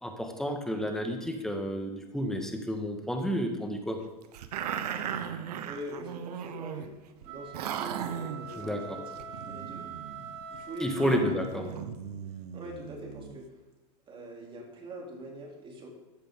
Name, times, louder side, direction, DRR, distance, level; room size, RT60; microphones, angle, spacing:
voice 1, 0.0-4.0 8.6-9.0 10.8-11.7, equal, ahead, 3 dB, 1.7 m, -31 dB
sound 1, 4.3-6.9 7.2-7.3 7.5-8.6 9.2-13.4, right 8 dB, 75° right, 1.1 m, -37 dB
voice 2, 5.6-6.9 7.2-9.8 10.5-11.1 11.5-11.8 12.5-13.5 14.1-15.9, equal, 25° right, 0 dB, 3.4 m, -42 dB
sound 2, 7.2-11.7, right 6 dB, 55° right, 2.5 m, -44 dB
14.5 x 10.0 x 3.9 m, 1.1 s
hypercardioid pair, 125°, 20 cm